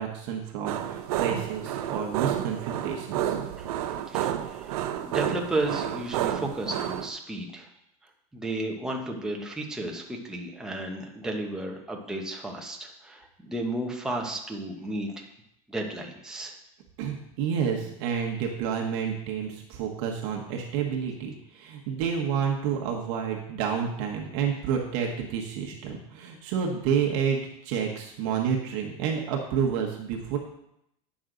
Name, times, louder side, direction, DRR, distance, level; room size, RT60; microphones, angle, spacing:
voice 1, 0.0-3.4 17.0-30.4, right 7 dB, 50° right, 0 dB, 1.2 m, -29 dB
sound 1, 0.6-7.1, right 11 dB, 80° right, 0.7 m, -30 dB
voice 2, 4.1-4.7 5.0-7.7 8.3-15.2 15.7-16.5, right 1 dB, 5° right, 0 dB, 0.9 m, -33 dB
9.4 x 6.2 x 3.8 m, 0.79 s
supercardioid pair, 165°, 19 cm